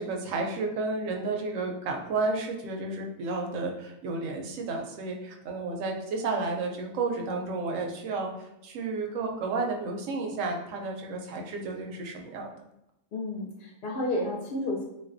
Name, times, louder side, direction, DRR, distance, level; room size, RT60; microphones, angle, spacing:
voice 1, 0.0-8.3 8.6-12.5, right 3 dB, 75° right, 2 dB, 0.9 m, -32 dB
voice 2, 13.1-14.8, left 1 dB, 55° left, -2 dB, 0.6 m, -31 dB
3.6 x 2.3 x 2.5 m, 0.87 s
omnidirectional pair, 1.4 m